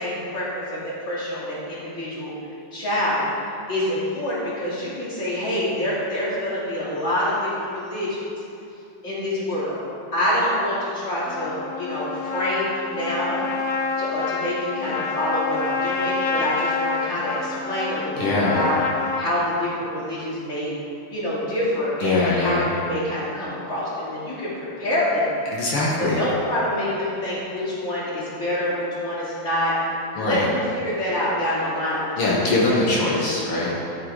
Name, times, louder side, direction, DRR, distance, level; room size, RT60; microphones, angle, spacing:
voice 1, 0.0-2.4 2.7-3.2 3.7-8.2 9.0-9.8 10.1-13.4 14.0-18.8 19.2-20.7 21.1-25.3 26.0-29.7 30.2-32.5 33.0-33.2 33.5-33.8, left 1 dB, 30° left, -9 dB, 3.0 m, -26 dB
Trumpet, 11.3-19.3, left 4 dB, 65° left, 0.8 m, -27 dB
voice 2, 18.2-18.7 22.0-22.7 25.5-26.2 30.2-30.5 32.2-33.7, left 2 dB, 80° left, -5 dB, 2.3 m, -22 dB
12.0 x 5.8 x 4.8 m, 2.7 s
omnidirectional pair, 2.4 m